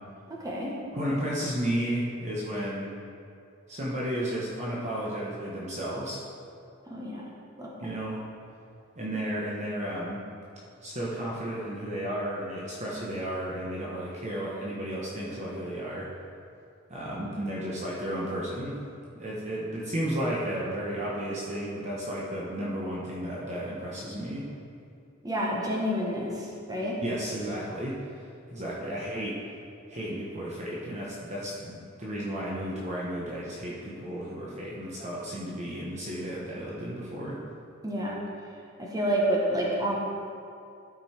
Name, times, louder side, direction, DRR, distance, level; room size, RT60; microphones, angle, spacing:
voice 1, 0.4-0.7 6.9-7.2 7.6-7.7 25.2-27.0 37.8-38.2 38.8-40.0, equal, 15° right, -4 dB, 1.4 m, -29 dB
voice 2, 0.9-2.9 3.7-6.2 7.8-8.2 8.9-10.2 10.8-16.1 16.9-18.8 19.1-24.5 27.0-28.0 28.5-29.4 29.9-37.4, right 1 dB, 35° right, -6 dB, 1.1 m, -33 dB
12.0 x 5.4 x 4.4 m, 2.4 s
head